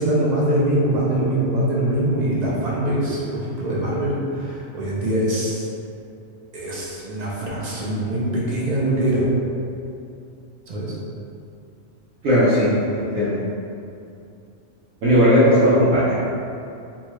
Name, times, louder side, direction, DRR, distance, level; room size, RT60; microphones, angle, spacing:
voice 1, 0.0-5.7 6.5-9.2 10.7-11.0, right 1 dB, 50° right, -6 dB, 0.5 m, -23 dB
voice 2, 12.2-12.7 12.9-13.3 15.0-16.2, equal, 85° right, -12 dB, 1.0 m, -16 dB
2.9 x 2.3 x 3.0 m, 2.6 s
omnidirectional pair, 1.3 m